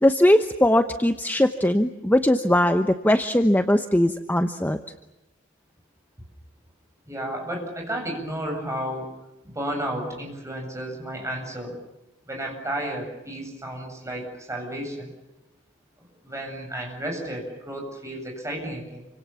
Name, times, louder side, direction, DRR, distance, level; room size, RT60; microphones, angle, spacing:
voice 1, 0.0-4.8, left 1 dB, 10° left, 8 dB, 1.0 m, -20 dB
voice 2, 7.1-9.1 9.4-11.8 12.2-15.1 16.2-19.1, right 1 dB, 15° right, 2 dB, 7.7 m, -32 dB
29.0 x 25.5 x 7.1 m, 0.98 s
head